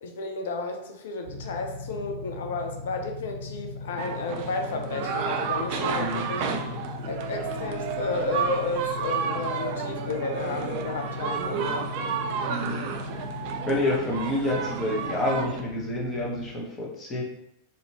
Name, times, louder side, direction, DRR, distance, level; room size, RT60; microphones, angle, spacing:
voice 1, 0.0-6.5 7.0-11.9, left 3 dB, 60° left, 4 dB, 0.4 m, -32 dB
sound 1, 1.2-16.5, left 4 dB, 85° left, 1.2 m, -38 dB
sound 2, 4.0-15.6, right 6 dB, 45° right, 0.3 m, -31 dB
voice 2, 5.9-6.8 12.4-12.8 13.7-17.2, left 1 dB, 20° left, -3 dB, 0.8 m, -29 dB
2.7 x 2.6 x 2.8 m, 0.81 s
figure-of-eight pair, 90°, 0 cm